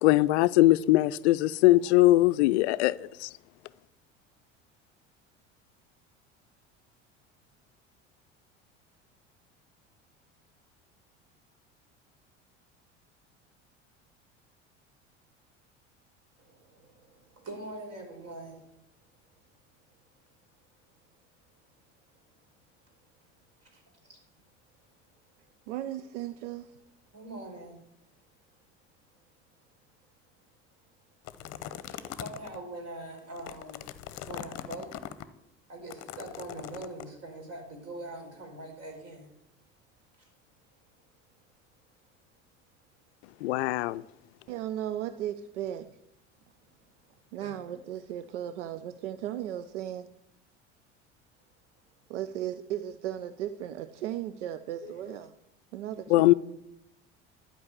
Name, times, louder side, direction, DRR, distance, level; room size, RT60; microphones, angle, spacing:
voice 1, 0.0-3.3 43.4-44.0 56.1-56.3, left 17 dB, 65° left, 0.5 m, -21 dB
voice 2, 16.4-18.6 23.6-23.8 24.1-24.2 27.1-27.8 31.4-31.5 31.8-33.8 34.3-34.9 35.7-39.3 43.6-43.7 47.4-47.5, right 2 dB, 40° right, 4.7 m, -43 dB
voice 3, 25.7-26.7 44.5-45.9 47.3-50.1 52.1-55.3 55.7-56.3, right 11 dB, 75° right, 0.6 m, -36 dB
sound 1, 31.2-32.6 33.2-35.2 35.9-37.0, left 12 dB, 45° left, 0.8 m, -41 dB
11.5 x 5.3 x 8.4 m
hypercardioid pair, 70°, 36 cm